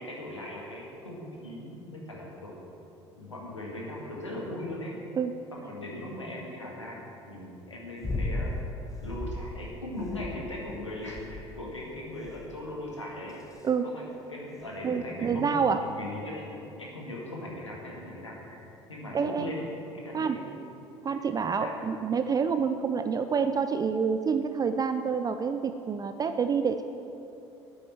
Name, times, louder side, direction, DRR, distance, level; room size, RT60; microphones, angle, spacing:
voice 1, 0.0-2.6 3.2-5.0 5.5-8.5 9.0-13.4 13.8-14.0 14.3-20.5 21.5-21.7, left 1 dB, 85° left, -3 dB, 2.0 m, -39 dB
sound 1, 8.0-8.5 8.9-9.5 10.0-10.7 11.1-11.6 12.3-12.6 13.3-13.7 14.6-14.7, left 2 dB, 20° left, 1.2 m, -35 dB
voice 2, 14.8-15.8 19.1-19.5 20.1-20.4 21.0-26.8, right 6 dB, 25° right, 8 dB, 0.5 m, -27 dB
9.4 x 8.6 x 7.3 m, 2.8 s
figure-of-eight pair, 60°, 15 cm